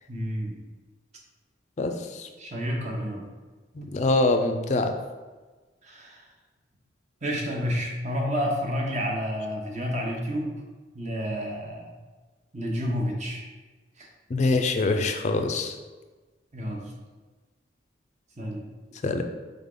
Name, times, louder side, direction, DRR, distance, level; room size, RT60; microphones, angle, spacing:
voice 1, 0.1-0.6 2.4-3.2 5.8-6.2 7.2-10.6 10.9-11.9 12.5-13.4 14.0-14.1 16.5-16.8 18.4-18.6, equal, 35° right, 0 dB, 0.8 m, -30 dB
voice 2, 1.8-2.3 3.8-4.9 14.3-15.7 19.0-19.2, left 2 dB, 35° left, 6 dB, 0.4 m, -24 dB
3.8 x 3.6 x 3.8 m, 1.3 s
head